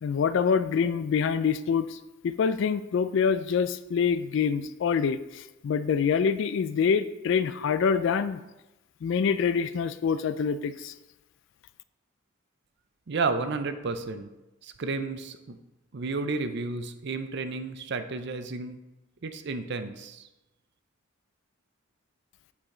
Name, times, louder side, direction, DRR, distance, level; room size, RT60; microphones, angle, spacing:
voice 1, 0.0-2.0 2.2-8.4 9.0-10.9, left 6 dB, 60° left, 13 dB, 0.3 m, -26 dB
voice 2, 13.1-14.3 14.6-15.6 15.9-18.8 19.2-20.3, right 4 dB, 55° right, 9 dB, 0.5 m, -32 dB
8.6 x 4.9 x 3.8 m, 0.99 s
head